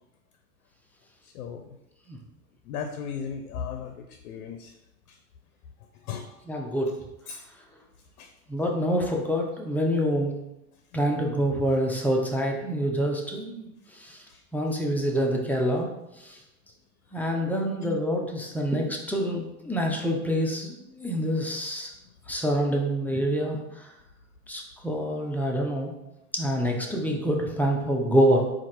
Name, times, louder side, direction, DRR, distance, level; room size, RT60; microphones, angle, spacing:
voice 1, 1.2-1.7 2.7-4.7 6.0-6.3 7.3-7.4 8.2-8.3 14.3-14.4, left 6 dB, 75° left, 6 dB, 0.6 m, -36 dB
voice 2, 6.5-6.9 8.5-10.3 10.9-13.7 14.0-14.2 14.5-15.9 16.2-16.3 17.1-21.9 22.3-23.6 24.5-25.9 26.3-28.4, equal, 5° left, -1 dB, 0.6 m, -26 dB
4.3 x 2.5 x 4.3 m, 0.90 s
hypercardioid pair, 105°, 44 cm